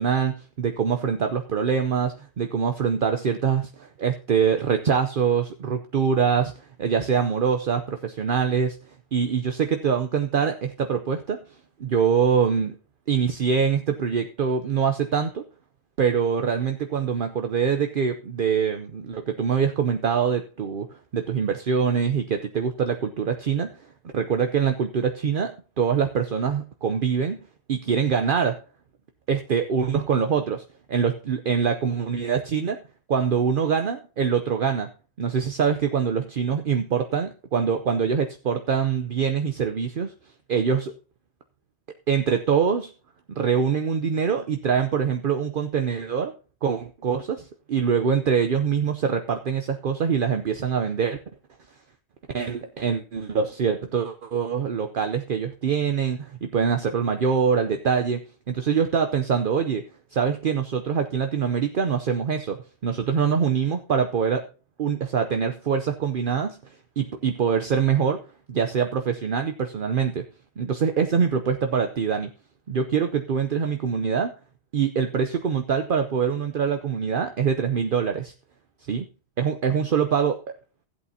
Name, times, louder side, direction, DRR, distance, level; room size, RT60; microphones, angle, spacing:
voice 1, 0.0-6.5 6.8-8.8 9.1-11.4 11.8-12.8 13.1-15.4 16.0-23.7 24.1-27.4 27.7-28.6 29.3-32.8 33.1-34.9 35.2-40.1 40.5-40.9 42.1-42.9 43.4-46.3 46.6-51.2 52.3-59.8 60.1-62.6 62.8-64.4 64.8-66.6 67.0-68.2 68.5-70.2 70.6-72.3 72.7-74.3 74.7-78.3 78.9-79.0 79.4-80.4, right 6 dB, 55° right, 6 dB, 0.9 m, -24 dB
16.0 x 8.3 x 2.7 m, 0.35 s
omnidirectional pair, 1.1 m